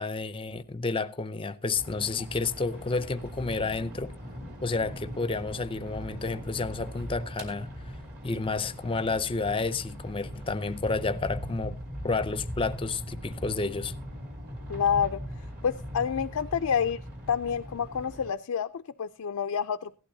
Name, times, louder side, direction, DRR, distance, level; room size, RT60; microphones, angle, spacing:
voice 1, 0.0-4.1 4.6-7.7 8.2-11.8 12.0-13.9, left 3 dB, 25° left, 0.6 m, -30 dB
sound 1, 1.8-18.3, equal, 45° right, 2.7 m, -40 dB
voice 2, 14.7-15.2 15.6-17.0 17.3-20.0, left 7 dB, 80° left, 0.5 m, -28 dB
16.5 x 11.5 x 2.7 m
head